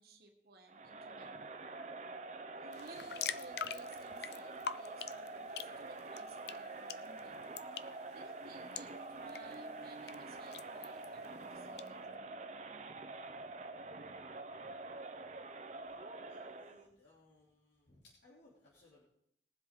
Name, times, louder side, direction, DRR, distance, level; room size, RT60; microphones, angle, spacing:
voice 1, 0.0-1.5 2.6-7.4 8.1-12.0, right 3 dB, 60° right, 3 dB, 1.5 m, -58 dB
Crowd, 0.7-16.9, right 3 dB, 40° right, 0.8 m, -46 dB
sound 1, 2.7-11.9, left 8 dB, 65° left, 0.5 m, -47 dB
voice 2, 16.3-19.0, left 2 dB, 85° left, -5 dB, 3.1 m, -64 dB
20.5 x 7.7 x 3.8 m, 0.70 s
head